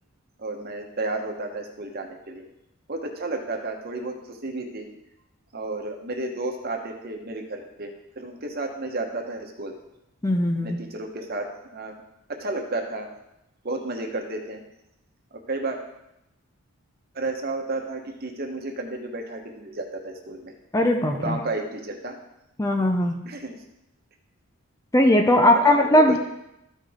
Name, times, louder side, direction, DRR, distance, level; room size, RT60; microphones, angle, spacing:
voice 1, 0.4-2.4 2.9-4.9 5.5-9.7 10.6-11.5 11.7-11.9 12.4-13.1 13.6-14.6 15.5-15.8 17.1-20.5 21.1-22.2 23.2-23.6 25.4-26.2, right 2 dB, 45° right, 2 dB, 1.1 m, -32 dB
voice 2, 10.2-10.8 20.7-21.4 22.6-23.2 24.9-26.2, left 1 dB, 15° left, 4 dB, 0.5 m, -19 dB
13.5 x 5.2 x 3.6 m, 0.87 s
head